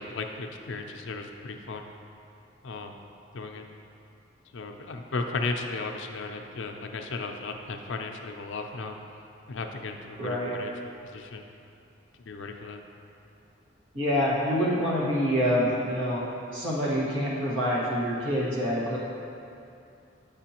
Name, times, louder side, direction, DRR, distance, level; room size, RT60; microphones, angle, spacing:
voice 1, 0.0-1.9 2.6-3.0 3.3-3.6 4.5-9.0 9.5-11.5 12.1-12.8, left 3 dB, 70° left, 4 dB, 0.5 m, -35 dB
voice 2, 10.2-10.5 13.9-16.2 16.5-19.0, equal, 80° right, -7 dB, 1.6 m, -26 dB
8.9 x 5.4 x 2.9 m, 2.7 s
head